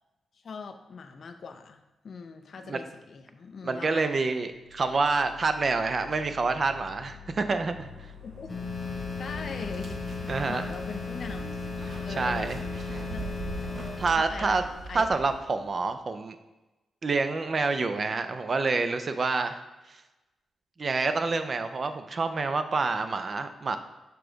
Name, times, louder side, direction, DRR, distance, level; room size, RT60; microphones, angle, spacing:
voice 1, 0.4-4.1 8.2-8.5 9.2-11.5 12.0-12.5 13.1-13.3 14.1-15.1, left 5 dB, 45° left, 6 dB, 0.4 m, -41 dB
voice 2, 3.6-7.9 10.3-10.7 12.2-12.6 13.9-14.6 14.9-16.4 17.0-19.6 19.9-20.0 20.8-23.8, right 3 dB, 35° right, 9 dB, 0.5 m, -27 dB
sound 1, 4.5-14.7, equal, 70° right, 1.4 m, -47 dB
sound 2, 8.5-14.1, left 4 dB, 25° left, 0.8 m, -35 dB
sound 3, 9.4-15.7, right 3 dB, 50° right, 0.9 m, -42 dB
6.9 x 4.8 x 3.9 m, 1.1 s
wide cardioid pair, 170°, 0 cm